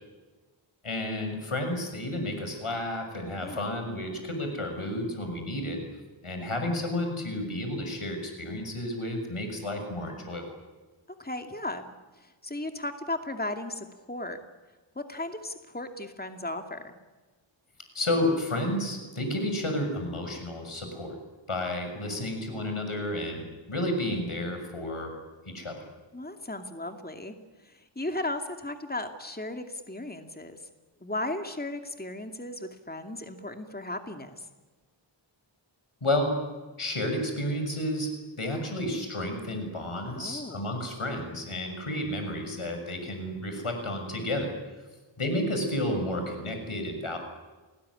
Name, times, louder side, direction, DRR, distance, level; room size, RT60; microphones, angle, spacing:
voice 1, 0.8-5.8 6.2-10.4 17.9-21.1 21.5-25.1 25.4-25.8 36.0-36.4 36.8-38.1 38.4-44.6 45.2-47.2, left 1 dB, 90° left, 4 dB, 6.8 m, -31 dB
voice 2, 11.2-14.4 15.0-16.9 22.0-22.2 26.1-27.3 27.6-30.6 31.0-34.5 40.1-40.6, left 2 dB, 20° left, 6 dB, 2.5 m, -36 dB
29.0 x 19.5 x 9.9 m, 1.3 s
wide cardioid pair, 55°, 49 cm